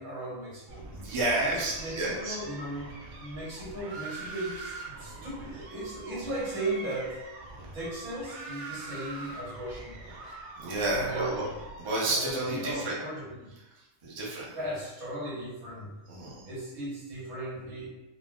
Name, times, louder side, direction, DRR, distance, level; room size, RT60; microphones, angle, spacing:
voice 1, 0.0-0.9 1.5-2.9 3.2-7.2 7.7-10.1 10.9-11.5 12.1-13.5 14.5-15.9 16.4-17.9, right 1 dB, 80° right, -5 dB, 1.4 m, -37 dB
sound 1, 0.7-12.0, right 3 dB, 65° right, 0.8 m, -44 dB
voice 2, 0.9-2.4 10.6-11.4 11.8-13.0 13.8-14.5 16.1-16.5, right 2 dB, 35° right, -5 dB, 0.5 m, -31 dB
4.1 x 2.1 x 2.2 m, 1.0 s
omnidirectional pair, 1.5 m